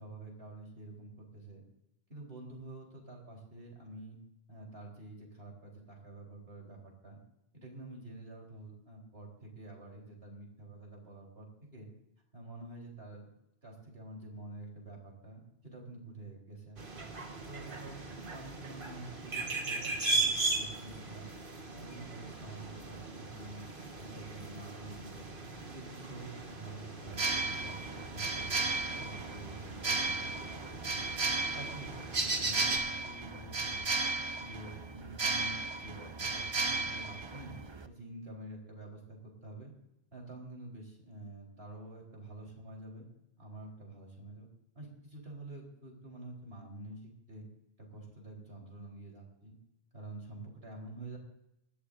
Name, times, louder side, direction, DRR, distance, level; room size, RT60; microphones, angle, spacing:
voice 1, 0.0-1.6 2.1-4.2 4.5-7.2 7.5-11.9 12.3-13.3 13.6-17.0 17.4-21.3 21.8-25.3 25.6-28.7 29.0-33.9 34.4-37.6 37.8-39.7 40.1-43.1 43.4-44.5 44.7-47.5 47.8-49.5 49.9-51.2, right 2 dB, 70° right, -1 dB, 4.3 m, -48 dB
sound 1, 16.8-32.8, right 3 dB, 55° right, 1.7 m, -38 dB
sound 2, 27.1-37.9, right 3 dB, 30° right, 0.7 m, -35 dB
20.0 x 13.5 x 2.6 m, 0.85 s
omnidirectional pair, 1.1 m